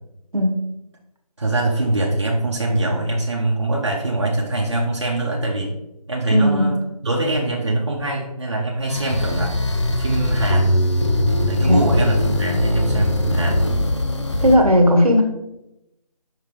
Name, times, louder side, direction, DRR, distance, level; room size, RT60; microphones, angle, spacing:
voice 1, 0.3-0.7 6.3-6.8 11.6-11.9 14.4-15.2, equal, 65° right, 3 dB, 1.2 m, -16 dB
voice 2, 1.4-5.7 6.1-6.8 7.0-9.5 10.0-10.8 11.5-13.8, right 2 dB, 45° right, -3 dB, 0.9 m, -23 dB
sound 1, 8.9-14.6, left 1 dB, 45° left, 0.7 m, -20 dB
5.6 x 3.7 x 4.8 m, 0.88 s
figure-of-eight pair, 170°, 20 cm